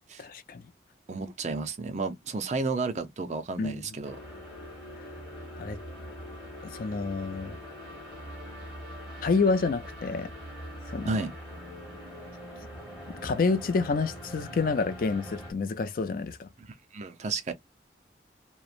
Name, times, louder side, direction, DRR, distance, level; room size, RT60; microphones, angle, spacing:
voice 1, 0.2-0.6 3.6-4.0 5.6-5.8 6.6-7.6 9.2-10.3 10.9-11.1 13.2-16.5, left 4 dB, 50° left, 0.4 m, -28 dB
voice 2, 1.1-4.2 11.1-11.3 16.6-16.7 16.9-17.5, right 3 dB, 40° right, 0.5 m, -32 dB
sound 1, 4.0-15.5, equal, 5° right, 1.4 m, -43 dB
3.0 x 2.1 x 2.4 m
head